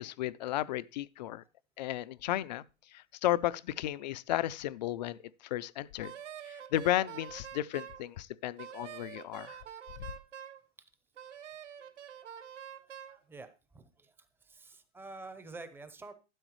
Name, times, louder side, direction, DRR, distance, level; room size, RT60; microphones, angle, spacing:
voice 1, 0.0-1.4 1.8-2.6 3.2-5.2 5.5-6.1 6.7-9.6, left 14 dB, 40° left, 0.4 m, -33 dB
Wind instrument woodwind instrument, 6.0-8.0 8.6-10.6 11.2-13.2, right 9 dB, 75° right, 1.5 m, -46 dB
voice 2, 12.9-14.1 14.4-16.1, right 3 dB, 5° right, 0.7 m, -49 dB
12.0 x 9.8 x 3.1 m
hypercardioid pair, 140°, 36 cm